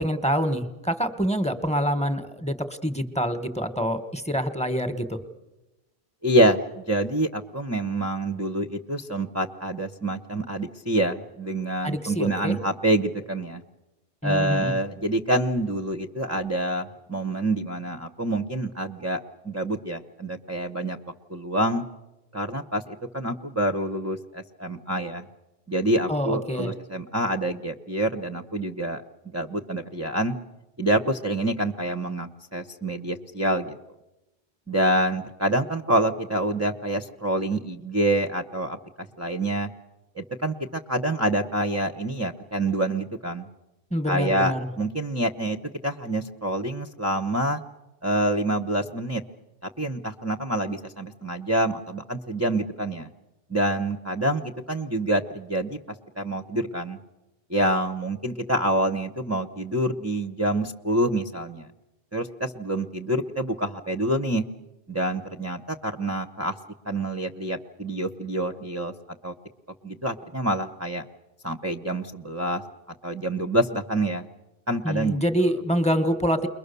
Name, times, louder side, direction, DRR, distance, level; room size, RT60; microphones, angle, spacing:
voice 1, 0.0-5.2 11.8-12.6 14.2-14.7 26.1-26.7 43.9-44.7 74.8-76.5, equal, 5° left, 10 dB, 1.3 m, -26 dB
voice 2, 6.2-13.6 14.2-19.2 19.4-21.0 21.3-21.8 22.3-25.3 25.7-29.0 29.3-30.4 30.8-33.7 34.7-39.7 40.2-43.5 44.1-45.6 45.8-47.6 48.0-49.2 49.8-53.1 53.5-55.8 56.2-57.0 57.5-61.7 62.1-64.4 64.9-66.5 66.9-68.9 69.2-69.3 69.8-71.0 71.4-72.6 73.0-74.3 74.7-75.2, right 1 dB, 15° right, 8 dB, 0.8 m, -26 dB
29.5 x 22.5 x 6.9 m, 1.0 s
omnidirectional pair, 1.3 m